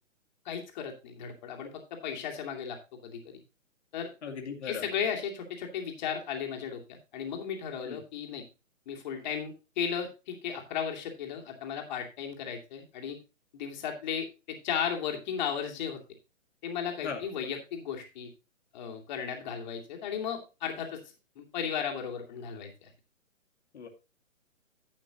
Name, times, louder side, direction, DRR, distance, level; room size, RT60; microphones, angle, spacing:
voice 1, 0.4-3.4 3.9-4.1 4.6-8.4 8.9-13.2 13.5-16.0 16.6-18.3 18.7-21.0 21.4-22.9, left 7 dB, 35° left, 2 dB, 2.5 m, -35 dB
voice 2, 4.2-4.9 7.8-8.0 17.0-17.2 23.7-23.9, left 6 dB, 55° left, 1 dB, 2.4 m, -38 dB
12.0 x 8.3 x 2.9 m, 0.29 s
figure-of-eight pair, 135°, 40 cm